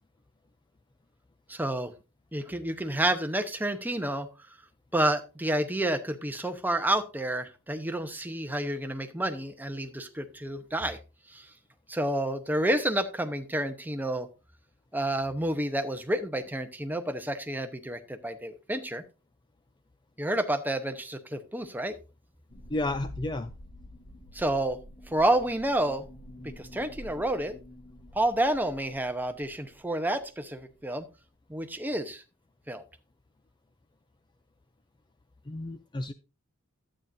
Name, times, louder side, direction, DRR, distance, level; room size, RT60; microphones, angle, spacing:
voice 1, 1.5-1.9 2.3-4.3 4.9-11.0 11.3-11.5 11.9-14.3 14.9-19.0 20.2-21.9 24.3-24.8 25.1-26.0 26.4-27.6 28.1-31.0 31.5-32.2 32.7-32.8, right 1 dB, 10° right, 7 dB, 0.9 m, -29 dB
sound 1, 22.5-29.9 30.1-30.3 30.8-30.9, left 1 dB, 40° left, 1.2 m, -48 dB
voice 2, 22.7-23.5 35.5-36.1, left 2 dB, 20° left, 10 dB, 0.4 m, -32 dB
12.0 x 8.8 x 2.6 m, 0.29 s
head